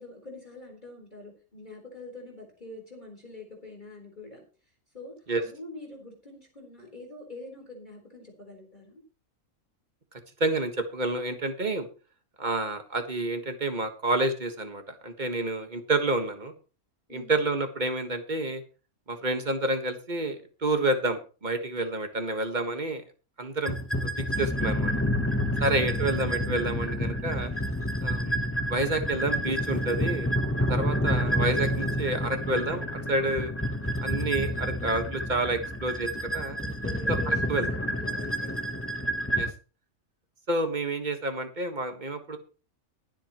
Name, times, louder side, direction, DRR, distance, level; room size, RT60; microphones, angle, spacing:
voice 1, 0.0-4.4 4.9-9.0 17.1-17.4 25.6-26.0 36.6-38.5, left 2 dB, 35° left, -1 dB, 4.3 m, -45 dB
voice 2, 10.4-11.9 12.4-16.5 17.1-18.6 19.1-23.0 23.4-23.7 24.0-24.1 24.4-24.9 25.6-27.5 28.0-28.4 28.7-30.3 30.7-33.5 34.0-36.6 37.1-37.7 39.4-39.5 40.5-42.4, right 2 dB, 35° right, 7 dB, 1.6 m, -29 dB
sound 1, 23.6-39.5, equal, 10° left, 0.9 m, -29 dB
22.5 x 7.7 x 3.0 m, 0.35 s
omnidirectional pair, 1.4 m